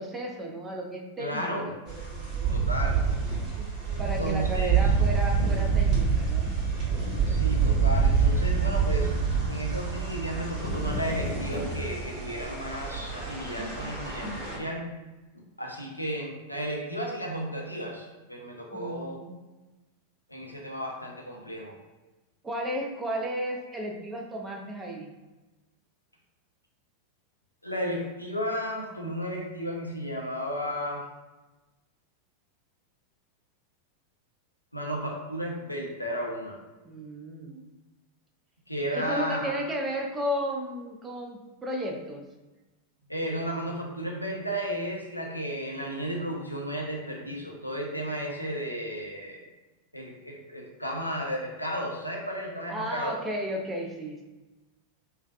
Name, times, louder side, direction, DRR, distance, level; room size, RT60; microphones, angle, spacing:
voice 1, 0.0-1.8 4.0-6.6 18.7-19.3 22.4-25.1 36.8-37.6 38.9-42.2 52.7-54.2, equal, 15° right, 0 dB, 0.5 m, -33 dB
voice 2, 1.2-1.7 2.5-3.0 4.2-4.8 7.3-14.9 15.6-19.2 20.3-21.8 27.6-31.0 34.7-36.6 38.7-39.6 43.1-49.4 49.9-53.1, equal, 90° left, -1 dB, 0.5 m, -33 dB
sound 1, 1.9-14.6, right 6 dB, 35° right, 1.1 m, -27 dB
sound 2, 5.4-12.1, left 2 dB, 45° left, 0.9 m, -36 dB
3.2 x 2.4 x 2.4 m, 1.1 s
figure-of-eight pair, 90°, 0 cm